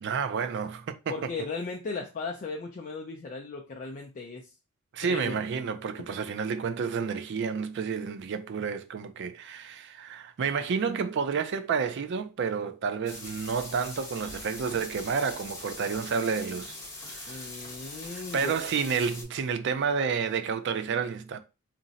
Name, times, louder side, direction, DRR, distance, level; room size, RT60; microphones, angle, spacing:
voice 1, 0.0-1.3 4.9-17.5 18.1-21.4, right 6 dB, 55° right, 0.3 m, -30 dB
voice 2, 1.1-4.5 5.0-5.4 17.3-18.5, left 3 dB, 35° left, 0.3 m, -37 dB
sound 1, 13.1-19.2, left 2 dB, 15° left, 1.0 m, -42 dB
2.5 x 2.0 x 3.9 m
head